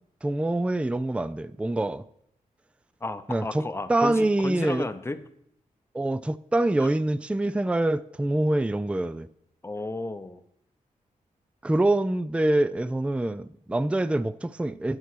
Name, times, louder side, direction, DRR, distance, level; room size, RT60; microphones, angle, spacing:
voice 1, 0.2-2.0 3.3-3.6 3.9-4.9 5.9-9.3 11.6-15.0, right 1 dB, 10° right, 0.4 m, -25 dB
voice 2, 3.0-5.2 6.8-6.9 9.6-10.4, left 2 dB, 15° left, 0.8 m, -33 dB
11.0 x 4.5 x 6.1 m
cardioid pair, 50°, 14 cm